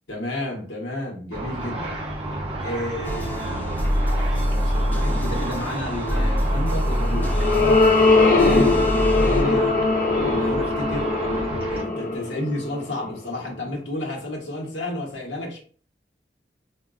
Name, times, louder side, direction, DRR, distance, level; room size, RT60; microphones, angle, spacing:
voice 1, 0.1-2.0 2.6-3.8 4.3-7.5 8.5-9.8 10.3-11.1 11.7-15.6, left 1 dB, 85° left, -1 dB, 1.0 m, -31 dB
Car / Traffic noise roadway noise / Engine, 1.3-11.8, right 2 dB, 30° right, 0.7 m, -31 dB
sound 1, 3.0-9.4, equal, 10° left, 0.4 m, -25 dB
sound 2, 6.8-13.3, left 3 dB, 50° left, 0.6 m, -21 dB
3.8 x 2.3 x 2.4 m, 0.43 s
head